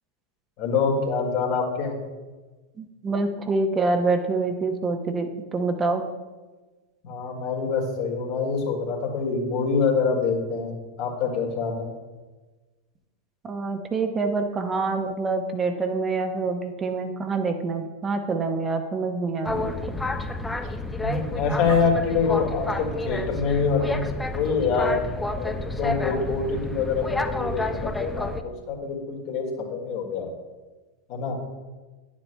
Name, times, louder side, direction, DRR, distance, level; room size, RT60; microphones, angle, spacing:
voice 1, 0.6-1.9 7.0-11.9 21.0-24.1 24.3-25.0 25.4-30.3 31.1-31.4, left 5 dB, 55° left, 1 dB, 1.9 m, -25 dB
voice 2, 2.8-6.0 13.4-20.0, right 3 dB, 25° right, 5 dB, 0.8 m, -26 dB
Boat Water vehicle, 19.5-28.4, left 2 dB, 10° left, 0.5 m, -30 dB
10.5 x 7.2 x 2.2 m, 1.3 s
hypercardioid pair, 95°, 0 cm